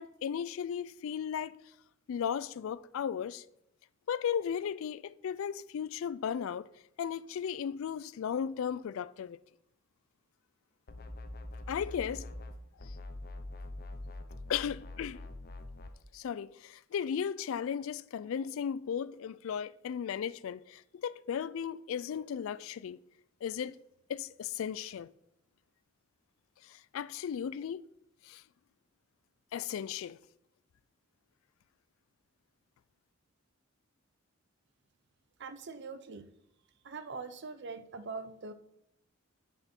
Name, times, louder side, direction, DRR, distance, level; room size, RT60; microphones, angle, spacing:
voice 1, 0.0-1.6 2.1-3.4 4.1-6.7 7.0-9.4 11.7-12.3 12.8-13.0 14.5-15.2 16.1-23.0 23.4-23.8 24.1-25.1 26.6-27.8 28.3-28.4 29.5-30.2, left 8 dB, 65° left, 0.3 m, -36 dB
sound 1, 10.9-12.5 12.8-15.9, left 1 dB, 45° left, 0.7 m, -44 dB
voice 2, 35.4-36.3 36.8-38.5, right 4 dB, 50° right, 0.6 m, -42 dB
8.0 x 7.0 x 4.4 m
head